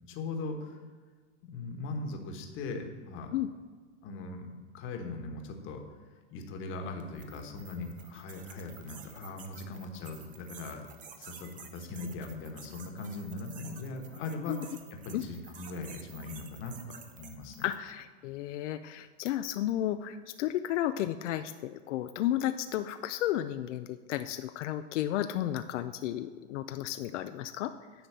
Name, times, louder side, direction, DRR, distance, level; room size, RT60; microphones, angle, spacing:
voice 1, 0.1-0.8 1.4-3.3 4.0-4.5 4.7-5.8 6.3-10.9 11.2-17.6, left 3 dB, 35° left, 4 dB, 1.3 m, -40 dB
sound 1, 7.0-17.9, right 7 dB, 20° right, 0.7 m, -51 dB
voice 2, 17.6-27.7, left 12 dB, 80° left, 10 dB, 0.5 m, -33 dB
10.0 x 3.9 x 7.3 m, 1.5 s
supercardioid pair, 140°, 36 cm